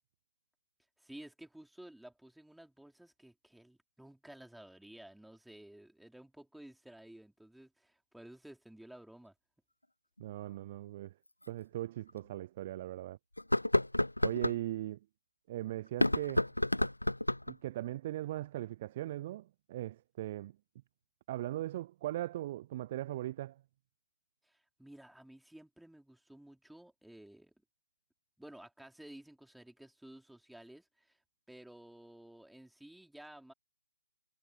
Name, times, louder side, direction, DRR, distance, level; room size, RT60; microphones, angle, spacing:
voice 1, 1.0-9.3 24.4-27.5 28.4-31.2 31.5-33.5, right 1 dB, ahead, 4.3 m, -54 dB
sound 1, 10.2-10.3 11.4-11.5 12.1-12.2 13.4-14.6 15.9-17.6, left 1 dB, 85° left, 0.7 m, -30 dB
voice 2, 10.2-11.1 11.5-13.2 14.2-15.0 15.5-16.5 17.5-20.5 21.3-23.6, right 14 dB, 30° right, 0.3 m, -39 dB
figure-of-eight pair, 145°, 0 cm